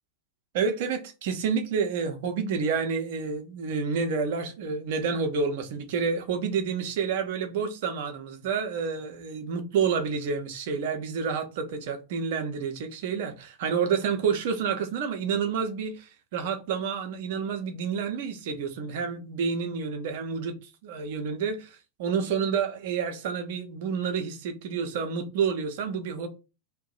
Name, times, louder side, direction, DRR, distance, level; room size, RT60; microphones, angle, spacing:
voice 1, 0.5-20.5 20.8-26.3, right 6 dB, 50° right, 0.6 m, -29 dB
2.7 x 2.2 x 3.7 m
figure-of-eight pair, 90°, 0 cm